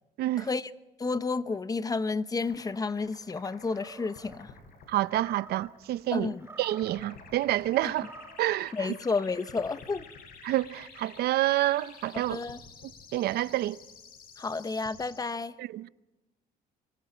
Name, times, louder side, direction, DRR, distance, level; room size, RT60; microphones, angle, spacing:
voice 1, 0.4-0.7 1.0-4.5 6.1-6.5 7.8-7.9 8.7-10.0 12.1-12.6 14.4-15.5, left 4 dB, 20° left, 0.9 m, -31 dB
sound 1, 2.4-15.2, left 6 dB, 60° left, 7.2 m, -52 dB
Animal, 3.7-4.4 5.1-5.7 6.3-7.1 7.8-8.5, right 3 dB, 15° right, 2.5 m, -49 dB
sound 2, 4.2-6.5 6.8-9.2 9.5-14.9, left 5 dB, 85° left, 5.1 m, -55 dB
voice 2, 4.9-8.1 8.4-8.9 10.4-12.4 13.1-13.8 15.6-15.9, right 15 dB, 70° right, 0.7 m, -28 dB
27.5 x 24.0 x 4.4 m
cardioid pair, 110°, 17 cm